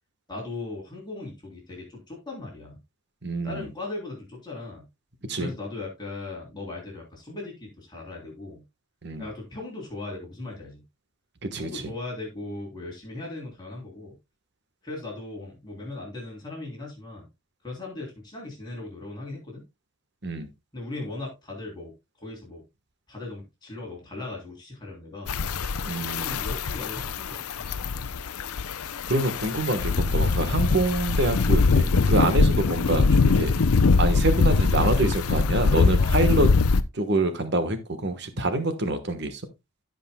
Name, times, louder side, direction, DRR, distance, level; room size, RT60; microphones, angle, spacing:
voice 1, 0.3-2.8 3.4-4.9 5.4-8.6 9.2-10.8 11.6-14.1 14.8-17.3 17.6-19.6 20.7-21.9 22.2-22.6 23.1-25.4 26.2-27.7 36.0-36.2 38.4-38.5, left 2 dB, 20° left, 3.3 m, -38 dB
voice 2, 3.2-3.7 5.3-5.5 9.0-9.3 11.4-11.9 20.2-20.5 25.8-26.4 29.1-33.5 34.0-36.5 36.9-39.4, right 2 dB, 50° right, 1.3 m, -26 dB
sound 1, 25.3-36.8, left 4 dB, 90° left, 0.6 m, -22 dB
16.0 x 5.3 x 2.2 m
head